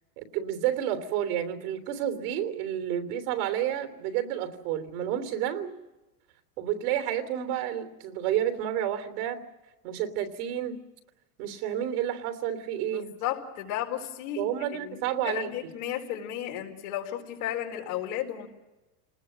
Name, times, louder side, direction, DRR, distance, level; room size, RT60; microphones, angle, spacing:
voice 1, 0.2-5.7 6.6-9.4 9.8-10.8 11.4-13.1 14.4-15.5, right 10 dB, 70° right, 7 dB, 3.3 m, -30 dB
voice 2, 12.9-18.5, left 11 dB, 70° left, 2 dB, 4.6 m, -34 dB
27.5 x 20.0 x 7.6 m, 1.1 s
supercardioid pair, 120°, 47 cm